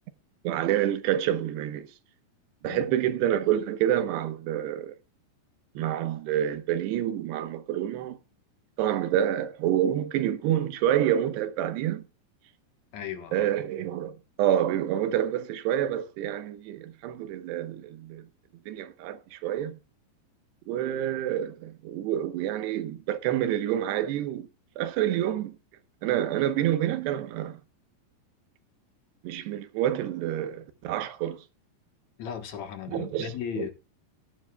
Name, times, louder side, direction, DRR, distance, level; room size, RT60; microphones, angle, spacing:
voice 1, 0.4-1.9 2.6-4.9 5.8-8.2 8.8-12.0 13.3-18.3 18.7-19.8 20.7-24.5 24.8-25.6 26.0-27.6 29.2-31.4 32.9-33.3 33.5-33.7, right 11 dB, 75° right, 3.1 m, -28 dB
voice 2, 12.9-13.5 32.2-33.7, left 8 dB, 60° left, 1.9 m, -36 dB
18.5 x 9.8 x 2.3 m
omnidirectional pair, 5.1 m